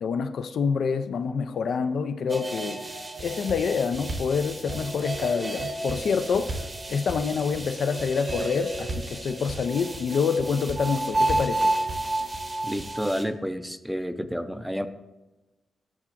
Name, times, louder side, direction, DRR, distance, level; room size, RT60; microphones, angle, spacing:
voice 1, 0.0-2.8 3.2-6.6 6.9-11.7, left 5 dB, 75° left, 0.3 m, -27 dB
sound 1, 2.3-13.2, right 2 dB, 30° right, 0.8 m, -31 dB
sound 2, 3.2-3.7 3.9-4.4 4.7-5.2 5.6-6.1 6.3-6.8 7.1-7.6 8.0-8.5 8.7-9.2 9.5-10.0 10.4-10.9 11.1-11.6 11.9-12.4 12.8-12.9, right 2 dB, 55° right, 1.0 m, -36 dB
voice 2, 12.6-14.9, equal, ahead, 0.4 m, -30 dB
8.5 x 5.7 x 2.5 m
cardioid pair, 65°, 0 cm